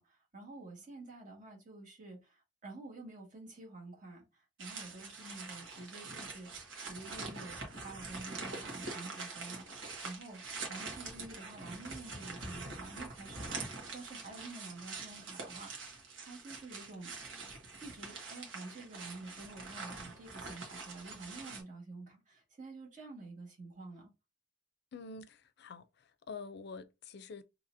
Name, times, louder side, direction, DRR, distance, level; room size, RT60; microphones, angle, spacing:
voice 1, 0.0-6.5 6.8-10.4 10.7-15.7 16.2-17.1 17.8-24.1, right 2 dB, 40° right, 1.8 m, -49 dB
sound 1, 4.6-21.6, right 3 dB, 90° right, 1.3 m, -45 dB
voice 2, 24.9-27.4, left 4 dB, 60° left, 0.5 m, -47 dB
4.0 x 2.8 x 2.7 m
head